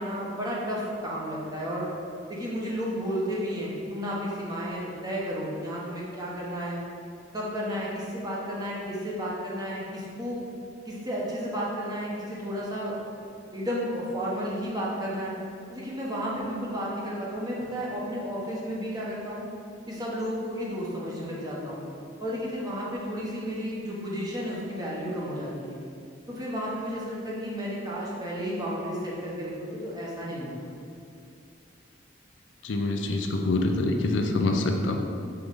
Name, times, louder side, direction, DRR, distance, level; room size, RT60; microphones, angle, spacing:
voice 1, 0.0-1.9 2.3-6.8 7.3-10.4 10.8-12.9 13.5-15.3 15.7-19.5 19.9-21.8 22.2-25.8 26.3-30.7, equal, 20° right, -5 dB, 1.1 m, -32 dB
voice 2, 32.6-35.0, left 2 dB, 75° left, 3 dB, 0.5 m, -25 dB
4.7 x 3.7 x 5.4 m, 2.5 s
head